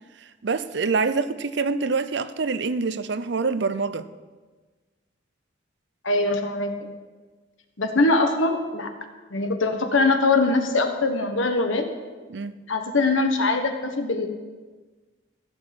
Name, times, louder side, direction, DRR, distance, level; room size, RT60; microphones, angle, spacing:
voice 1, 0.2-4.1 12.3-12.5, right 4 dB, 60° right, 0.6 m, -26 dB
voice 2, 6.0-6.9 7.8-8.9 9.3-11.8 12.7-14.3, left 3 dB, 90° left, 1.4 m, -22 dB
15.5 x 6.3 x 7.8 m
head